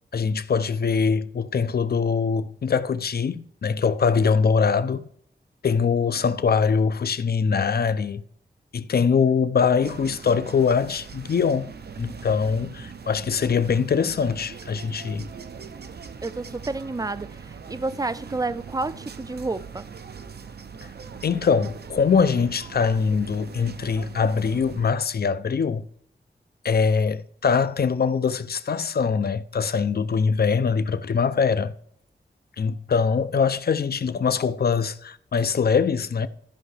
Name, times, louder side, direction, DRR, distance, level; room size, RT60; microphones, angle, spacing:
voice 1, 0.1-5.1 5.6-8.2 8.7-11.7 12.0-15.3 21.2-25.9 26.6-31.7 32.6-36.3, left 6 dB, 60° left, 0.5 m, -23 dB
sound 1, 9.8-24.9, right 6 dB, 65° right, 0.6 m, -41 dB
voice 2, 16.2-19.9, right 3 dB, 20° right, 0.4 m, -30 dB
13.5 x 5.5 x 3.3 m
wide cardioid pair, 95°, 18 cm